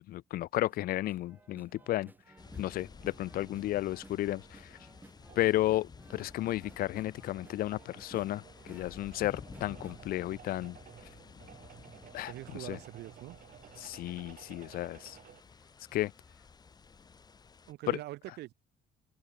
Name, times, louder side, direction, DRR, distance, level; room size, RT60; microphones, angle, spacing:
voice 1, 0.1-2.1 2.6-4.8 5.4-10.8 12.1-12.3 12.6-12.8 13.8-15.2 15.9-16.1 17.9-18.0, left 15 dB, 60° left, 0.4 m, -33 dB
sound 1, 0.7-11.0 11.4-13.9 14.4-14.5 14.8-15.1 15.6-16.6 16.9-17.0, right 2 dB, 10° right, 1.5 m, -59 dB
sound 2, 1.3-15.4, right 10 dB, 55° right, 7.0 m, -57 dB
sound 3, 2.4-17.7, left 5 dB, 25° left, 0.8 m, -53 dB
voice 2, 12.3-13.4 17.7-18.5, right 17 dB, 80° right, 2.7 m, -43 dB
cardioid pair, 110°, 17 cm